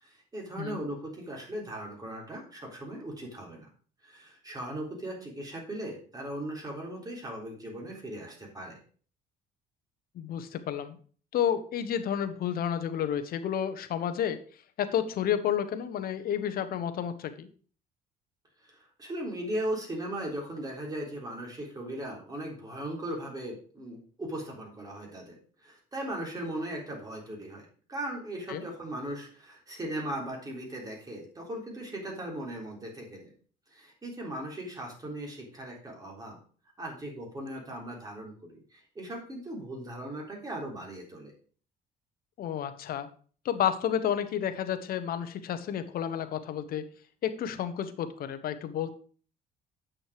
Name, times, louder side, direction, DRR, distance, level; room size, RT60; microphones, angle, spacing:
voice 1, 0.0-3.7 4.0-8.8 18.7-33.3 33.7-36.4 36.8-41.3, right 1 dB, 20° right, -1 dB, 3.6 m, -38 dB
voice 2, 10.1-11.0 11.3-14.4 14.8-17.5 28.5-28.6 42.4-43.1 43.4-46.8 47.2-48.9, left 9 dB, 60° left, 10 dB, 1.1 m, -31 dB
8.5 x 6.3 x 4.9 m, 0.43 s
cardioid pair, 110°, 17 cm